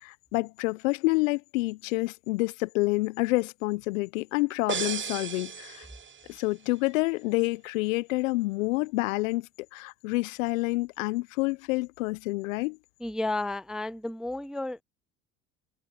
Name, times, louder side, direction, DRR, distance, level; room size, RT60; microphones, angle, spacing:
voice 1, 0.0-5.9 6.3-12.8, left 23 dB, 75° left, 1.0 m, -28 dB
sound 1, 4.7-6.5, right 7 dB, 30° right, 1.1 m, -35 dB
voice 2, 13.0-14.8, left 2 dB, ahead, 0.4 m, -32 dB
hypercardioid pair, 60°, 39 cm